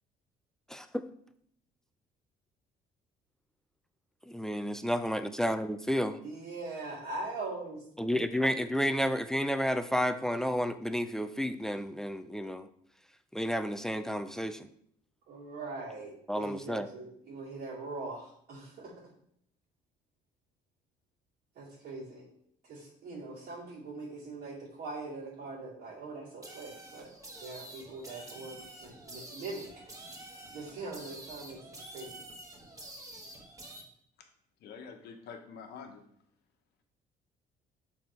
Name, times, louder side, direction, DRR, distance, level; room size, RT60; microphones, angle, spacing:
voice 1, 0.7-1.0 4.3-6.2 8.0-12.7 13.3-14.7 16.3-16.9, equal, 5° left, 10 dB, 0.4 m, -31 dB
voice 2, 6.2-7.8 15.3-18.9 21.6-22.2 22.6-27.1 27.4-29.6 30.5-32.1, right 3 dB, 70° right, -8 dB, 2.3 m, -42 dB
sound 1, 26.4-33.8, right 1 dB, 20° right, 1.4 m, -48 dB
voice 3, 34.6-36.0, left 6 dB, 75° left, 4 dB, 1.2 m, -46 dB
6.5 x 4.1 x 4.5 m, 0.68 s
cardioid pair, 110°, 17 cm